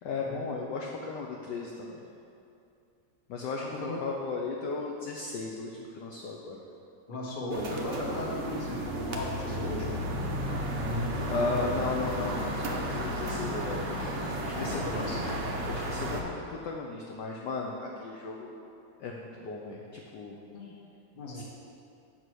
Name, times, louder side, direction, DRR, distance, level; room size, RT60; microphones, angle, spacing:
voice 1, 0.0-2.0 3.3-6.6 11.3-13.9 14.4-15.1 15.7-18.5 19.0-20.4 21.3-21.4, left 4 dB, 75° left, 0 dB, 1.0 m, -35 dB
voice 2, 3.6-4.0 7.1-10.0 14.5-15.4 20.5-20.7 21.1-21.4, left 1 dB, 35° left, -4 dB, 0.9 m, -36 dB
sound 1, 7.5-16.2, right 1 dB, 75° right, 0.6 m, -33 dB
sound 2, 9.2-15.4, left 2 dB, 55° left, 1.5 m, -45 dB
7.8 x 4.1 x 6.2 m, 2.6 s
omnidirectional pair, 2.4 m